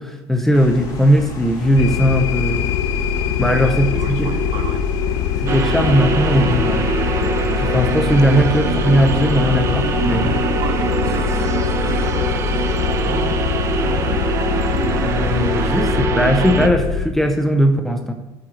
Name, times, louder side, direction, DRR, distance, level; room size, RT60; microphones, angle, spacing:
voice 1, 0.0-2.7 3.4-4.3 5.4-6.9 7.5-10.3 15.0-18.1, equal, 5° left, 5 dB, 0.7 m, -18 dB
sound 1, 0.5-15.9, left 3 dB, 40° left, 2.5 m, -32 dB
sound 2, 1.8-17.1, left 8 dB, 65° left, 0.9 m, -22 dB
voice 2, 3.2-4.9 10.2-13.3, right 5 dB, 55° right, 5 dB, 1.8 m, -32 dB
sound 3, 5.5-16.7, right 6 dB, 30° right, 0.9 m, -23 dB
10.0 x 7.8 x 7.9 m, 1.0 s
cardioid pair, 180°, 10 cm